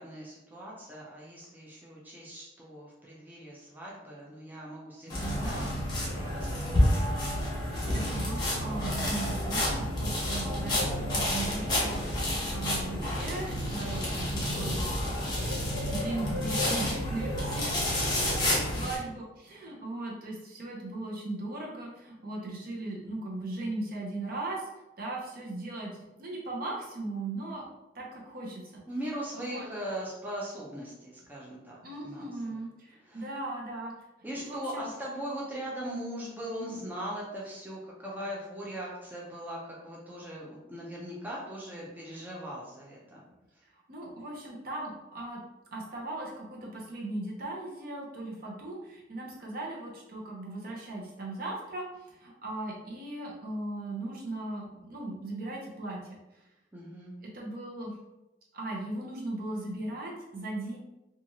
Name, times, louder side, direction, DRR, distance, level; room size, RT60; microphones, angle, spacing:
voice 1, 0.0-5.6 6.0-7.1 18.3-19.0 28.9-32.3 33.0-33.3 34.2-43.2 56.7-57.1, equal, 10° right, -5 dB, 0.5 m, -40 dB
sound 1, 5.1-18.9, left 1 dB, 25° left, 1.0 m, -29 dB
voice 2, 5.2-5.7 7.9-15.4 15.9-24.7 25.0-27.7 27.9-28.8 29.4-29.7 31.8-33.9 34.3-34.9 43.7-45.4 45.7-56.1 57.2-58.0 58.5-60.8, right 2 dB, 55° right, -2 dB, 0.7 m, -38 dB
2.9 x 2.4 x 2.7 m, 0.97 s
head